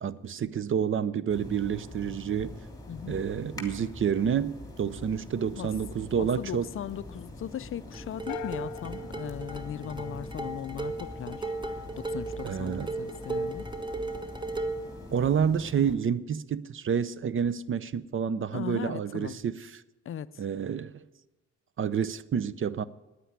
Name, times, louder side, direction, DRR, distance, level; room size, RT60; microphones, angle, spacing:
voice 1, 0.0-2.5 3.1-6.7 12.4-12.9 15.1-19.8 20.4-20.9 21.8-22.8, right 7 dB, 45° right, 0.6 m, -29 dB
sound 1, 1.3-16.0, left 2 dB, 10° left, 2.9 m, -44 dB
voice 2, 6.2-13.7 18.5-19.4 20.1-20.4, left 10 dB, 45° left, 0.5 m, -38 dB
sound 2, 7.9-14.9, right 3 dB, 15° right, 1.2 m, -36 dB
sound 3, 8.3-10.5, left 16 dB, 90° left, 0.6 m, -44 dB
9.8 x 9.2 x 9.8 m
cardioid pair, 90°, 30 cm